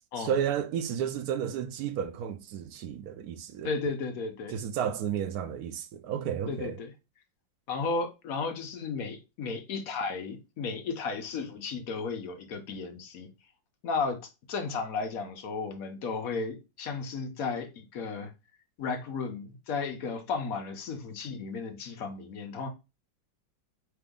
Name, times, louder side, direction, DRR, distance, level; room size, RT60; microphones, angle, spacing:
voice 1, 0.2-3.7 4.5-6.8, right 9 dB, 75° right, 0.9 m, -32 dB
voice 2, 3.6-4.6 6.5-6.9 7.7-13.3 13.8-18.3 18.8-22.7, left 4 dB, 60° left, 1.0 m, -34 dB
3.9 x 3.4 x 3.6 m
omnidirectional pair, 2.1 m